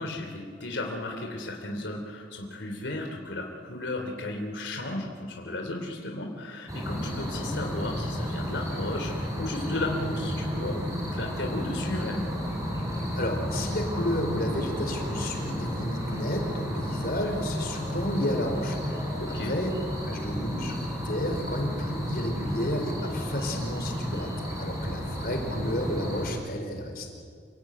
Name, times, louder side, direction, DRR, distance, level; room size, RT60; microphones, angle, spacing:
voice 1, 0.0-12.3 17.1-17.4 19.2-19.5 22.6-22.8, left 2 dB, 80° left, 2 dB, 3.0 m, -34 dB
sound 1, 6.7-26.3, equal, 20° right, 6.3 m, -32 dB
voice 2, 13.1-19.2 19.4-19.7 20.1-27.1, left 1 dB, 55° left, 4 dB, 4.7 m, -31 dB
28.5 x 18.0 x 9.4 m, 2.2 s
head